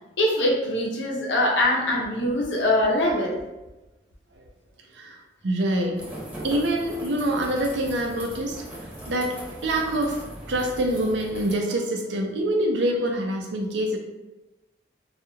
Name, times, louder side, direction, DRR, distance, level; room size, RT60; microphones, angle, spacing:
voice 1, 0.2-3.4, left 1 dB, 85° left, -1 dB, 0.7 m, -23 dB
voice 2, 5.4-6.0 6.4-8.6 9.1-10.2 10.5-14.0, right 1 dB, 75° right, 2 dB, 0.5 m, -25 dB
sound 1, 6.0-11.6, right 1 dB, 10° right, 0.8 m, -39 dB
2.3 x 2.2 x 3.1 m, 1.0 s
head